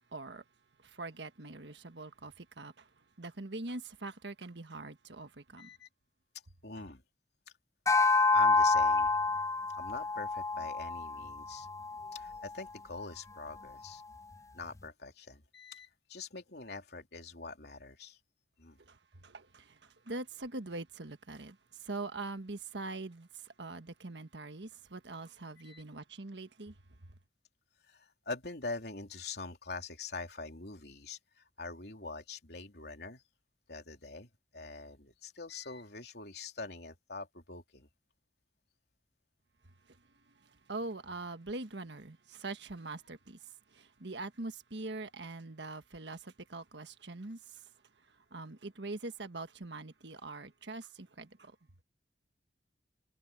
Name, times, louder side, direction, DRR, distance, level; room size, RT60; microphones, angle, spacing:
voice 1, 0.1-0.4 0.8-2.9 3.2-5.7 18.9-19.0 19.2-21.6 21.8-23.3 23.6-26.7 40.7-43.4 43.7-47.6 48.3-51.5, right 2 dB, 75° right, 1.5 m, -43 dB
voice 2, 5.6-5.9 6.6-7.0 8.3-9.1 9.8-11.7 12.1-14.0 14.5-18.2 18.6-18.8 25.6-25.8 27.9-33.2 33.7-37.9, left 3 dB, 65° left, 3.5 m, -44 dB
sound 1, 7.9-12.4, left 3 dB, 15° left, 0.4 m, -28 dB
head